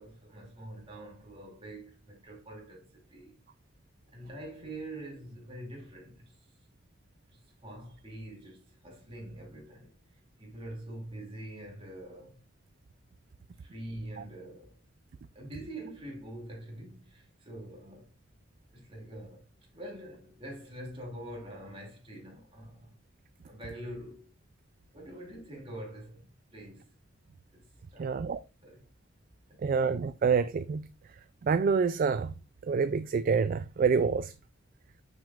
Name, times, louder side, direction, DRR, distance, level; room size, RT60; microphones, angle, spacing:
voice 1, 0.0-3.4 4.1-6.4 7.6-9.9 10.4-12.4 13.6-14.7 15.3-18.1 18.7-19.4 19.7-22.9 23.4-24.3 24.9-26.9 27.5-28.2 28.6-28.9 29.5-29.8, right 1 dB, 30° right, 2.7 m, -45 dB
voice 2, 28.0-28.4 29.6-30.9 31.4-32.3 32.7-34.3, right 5 dB, 45° right, 0.3 m, -27 dB
6.7 x 6.1 x 2.5 m
head